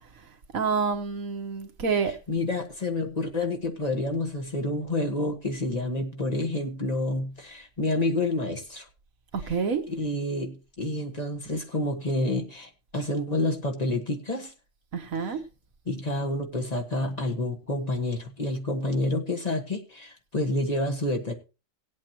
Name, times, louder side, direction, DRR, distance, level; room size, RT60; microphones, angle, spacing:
voice 1, 0.5-2.1 9.5-9.8 14.9-15.4, right 5 dB, 80° right, 1.6 m, -27 dB
voice 2, 2.0-8.9 9.4-9.5 9.9-14.5 15.2-15.4 15.8-21.3, left 2 dB, 30° left, 1.5 m, -29 dB
18.5 x 8.3 x 2.9 m
omnidirectional pair, 1.4 m